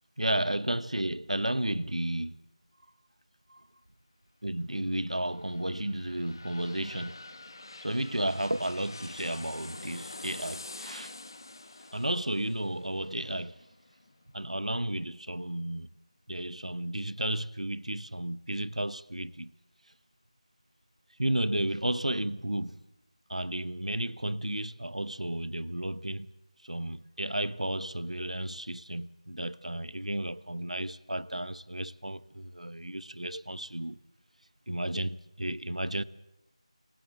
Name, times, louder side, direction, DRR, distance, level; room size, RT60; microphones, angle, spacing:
voice 1, 0.2-2.4 3.5-3.7 4.4-7.1 7.8-11.2 11.8-13.7 14.3-16.0 16.3-19.5 21.2-22.8 23.3-26.3 26.6-34.0 34.7-36.0, right 1 dB, 85° right, 1.2 m, -33 dB
sound 1, 5.1-14.7 15.1-15.2, left 2 dB, 40° left, 1.7 m, -47 dB
27.0 x 17.5 x 7.7 m
figure-of-eight pair, 170°, 4 cm